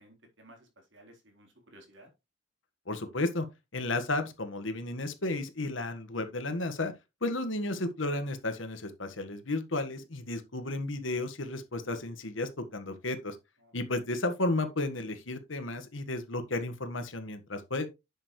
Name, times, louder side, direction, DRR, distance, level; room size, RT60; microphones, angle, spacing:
voice 1, 0.0-2.1 13.6-13.7, right 1 dB, 70° right, 3.8 m, -56 dB
voice 2, 2.9-3.5 3.7-6.9 7.2-13.4 13.7-17.9, left 2 dB, 80° left, 1.6 m, -33 dB
10.0 x 7.0 x 3.2 m
head